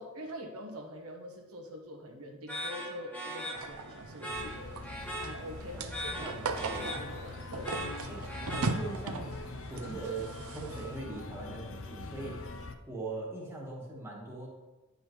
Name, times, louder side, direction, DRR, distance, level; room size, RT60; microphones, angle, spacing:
voice 1, 0.0-4.8 5.2-6.4 6.7-7.9, equal, 90° right, 2 dB, 1.2 m, -44 dB
sound 1, 2.5-9.2, equal, 5° left, 1.0 m, -40 dB
sound 2, 3.5-11.0, right 3 dB, 70° right, 0.5 m, -39 dB
sound 3, 4.3-12.8, left 2 dB, 65° left, 0.6 m, -43 dB
voice 2, 6.2-7.0 8.1-8.2 8.5-9.3 9.7-12.4 12.9-14.5, right 3 dB, 10° right, -3 dB, 1.3 m, -41 dB
9.8 x 5.3 x 3.1 m, 1.1 s
head